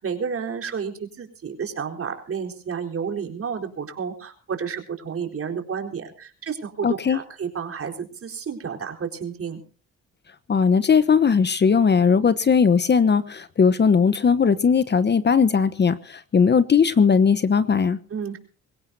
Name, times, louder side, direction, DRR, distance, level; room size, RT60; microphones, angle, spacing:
voice 1, 0.0-9.6 18.1-18.4, right 6 dB, 50° right, 4 dB, 4.4 m, -31 dB
voice 2, 6.8-7.2 10.5-18.0, left 6 dB, 35° left, 14 dB, 1.0 m, -18 dB
24.5 x 16.0 x 2.7 m, 0.39 s
cardioid pair, 90°, 30 cm